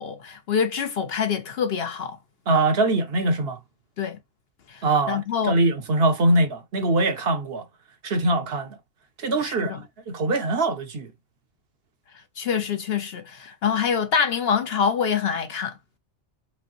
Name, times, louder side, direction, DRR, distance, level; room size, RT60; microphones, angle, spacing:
voice 1, 0.0-2.2 4.0-4.2 4.7-5.6 9.4-9.8 12.4-15.8, left 7 dB, 60° left, 0.8 m, -25 dB
voice 2, 2.5-3.6 4.8-7.6 8.0-8.8 9.2-9.8 10.1-11.1, right 2 dB, 55° right, 0.9 m, -22 dB
5.0 x 3.0 x 2.9 m
omnidirectional pair, 1.3 m